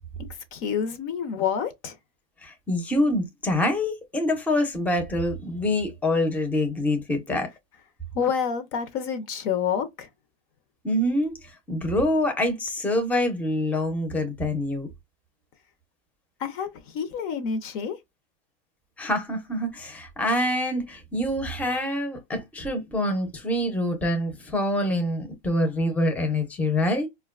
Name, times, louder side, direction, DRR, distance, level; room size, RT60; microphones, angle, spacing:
voice 1, 0.5-2.0 8.1-10.1 16.4-18.0, left 7 dB, 45° left, 0.6 m, -28 dB
voice 2, 2.4-7.5 10.8-14.9 19.0-27.1, left 1 dB, 5° left, 0.6 m, -26 dB
4.4 x 2.2 x 2.3 m
supercardioid pair, 125°, 31 cm